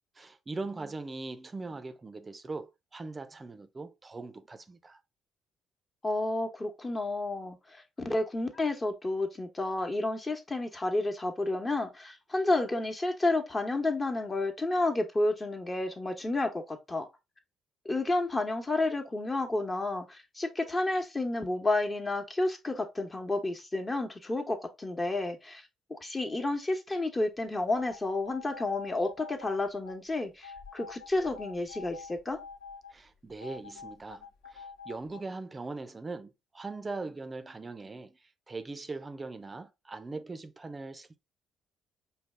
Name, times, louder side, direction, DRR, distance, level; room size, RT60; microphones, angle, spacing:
voice 1, 0.2-5.0 32.9-41.2, right 3 dB, 30° right, 0.6 m, -41 dB
voice 2, 6.0-17.1 17.8-25.6 25.9-32.4, left 2 dB, 25° left, 1.1 m, -31 dB
sound 1, 27.7-29.9 30.4-32.9 33.4-35.2, left 5 dB, 85° left, 1.4 m, -46 dB
5.1 x 2.3 x 3.3 m
hypercardioid pair, 50°, 0 cm